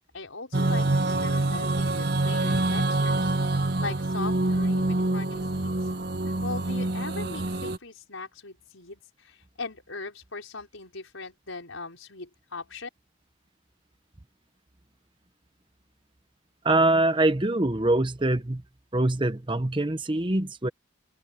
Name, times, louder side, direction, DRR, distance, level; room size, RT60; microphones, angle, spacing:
voice 1, 0.1-3.3 3.8-5.8 6.4-12.9, left 3 dB, 80° left, 5.3 m, -39 dB
sound 1, 0.5-7.8, right 2 dB, 55° right, 1.2 m, -26 dB
voice 2, 16.6-18.6 18.9-20.7, right 2 dB, 25° right, 0.9 m, -24 dB
open air
head